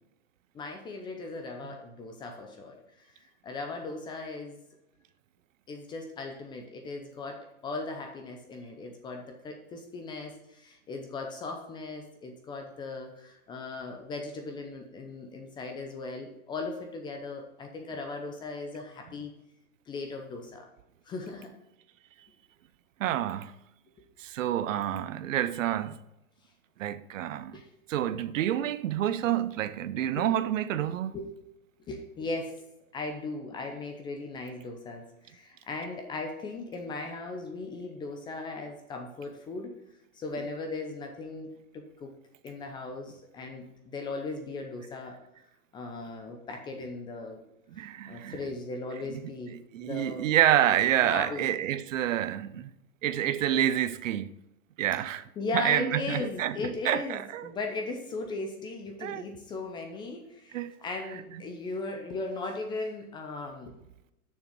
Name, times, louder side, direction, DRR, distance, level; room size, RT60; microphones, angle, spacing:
voice 1, 0.5-2.8 3.1-4.6 5.7-19.3 19.9-20.7 21.1-21.5 27.5-27.7 30.1-30.3 31.1-31.3 31.9-32.6 32.9-39.8 40.1-42.1 42.4-45.2 45.7-47.4 48.1-50.3 51.0-51.5 55.4-63.7, left 3 dB, 10° left, 0.5 m, -38 dB
voice 2, 23.0-23.5 24.2-26.0 26.8-27.6 27.9-31.2 47.7-48.4 49.5-52.7 53.0-54.3 54.8-55.3 55.5-56.6 56.8-57.5 59.0-59.3 60.5-60.8, right 11 dB, 60° right, 0.7 m, -28 dB
6.7 x 6.5 x 6.0 m
hypercardioid pair, 135°, 45 cm